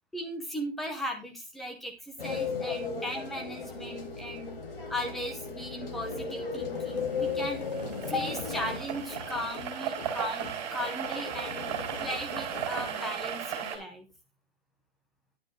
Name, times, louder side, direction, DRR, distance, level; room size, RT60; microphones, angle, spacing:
voice 1, 0.1-4.6 4.9-7.6 8.0-11.7 12.0-14.1, equal, ahead, 3 dB, 0.5 m, -37 dB
sound 1, 2.2-8.8, left 5 dB, 65° left, 4.1 m, -35 dB
sound 2, 6.1-12.9, left 3 dB, 45° left, 2.8 m, -44 dB
sound 3, 7.0-13.8, right 8 dB, 30° right, 4.3 m, -36 dB
11.5 x 7.8 x 3.7 m, 0.25 s
hypercardioid pair, 160°, 30 cm